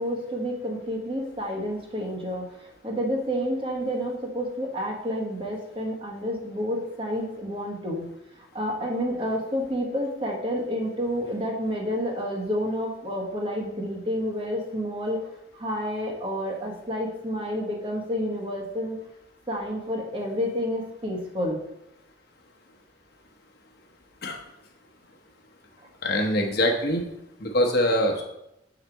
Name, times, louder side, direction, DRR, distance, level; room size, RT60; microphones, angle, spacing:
voice 1, 0.0-8.0 8.5-15.2 15.5-19.0 19.5-21.6, equal, 30° right, 0 dB, 1.3 m, -29 dB
voice 2, 26.0-27.1 27.4-28.2, left 1 dB, 60° left, 2 dB, 1.0 m, -23 dB
6.4 x 4.0 x 4.6 m, 0.86 s
head